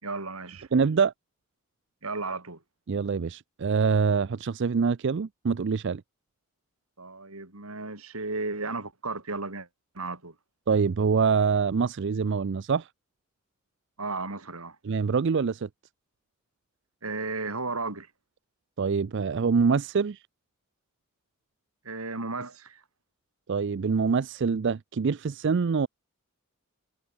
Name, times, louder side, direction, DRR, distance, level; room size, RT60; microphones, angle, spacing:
voice 1, 0.0-0.7 2.0-2.6 7.0-9.7 9.9-10.4 14.0-14.8 17.0-18.1 21.8-22.8, right 3 dB, 80° right, 4.0 m, -34 dB
voice 2, 0.7-1.1 2.9-6.0 10.7-12.9 14.8-15.7 18.8-20.2 23.5-25.9, right 5 dB, 55° right, 0.4 m, -25 dB
head